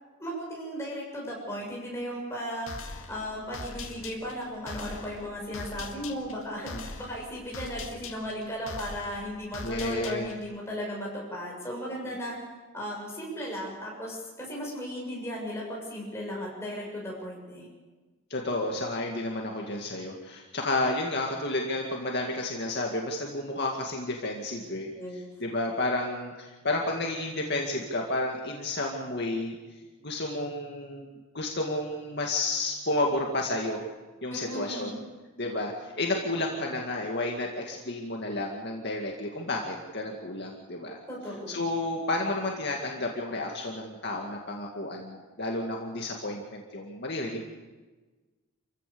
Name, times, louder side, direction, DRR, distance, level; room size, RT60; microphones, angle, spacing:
voice 1, 0.2-12.4 12.7-17.7 25.0-25.2 34.3-35.0 41.1-41.7, equal, 15° left, -3 dB, 7.4 m, -36 dB
sound 1, 2.7-10.5, left 3 dB, 75° left, 2.1 m, -42 dB
voice 2, 9.6-10.3 12.1-12.2 18.3-24.9 25.4-29.6 30.0-33.8 34.2-34.9 35.4-41.0 41.5-47.4, left 2 dB, 50° left, 0 dB, 2.2 m, -31 dB
28.0 x 16.0 x 7.0 m, 1.2 s
head